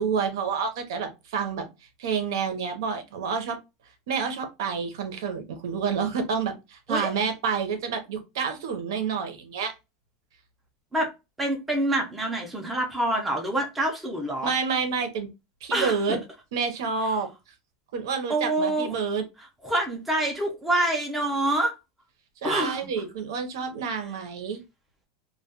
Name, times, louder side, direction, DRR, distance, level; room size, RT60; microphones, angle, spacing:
voice 1, 0.0-1.7 2.0-3.6 4.1-9.7 14.4-15.3 15.6-16.2 16.5-17.3 17.9-19.2 22.4-24.6, right 5 dB, 75° right, 0.7 m, -28 dB
voice 2, 11.4-14.5 15.7-16.2 18.3-18.9 19.6-21.7 22.4-22.8, right 1 dB, 5° right, 0.5 m, -26 dB
2.2 x 2.2 x 2.8 m
supercardioid pair, 180°, 2 cm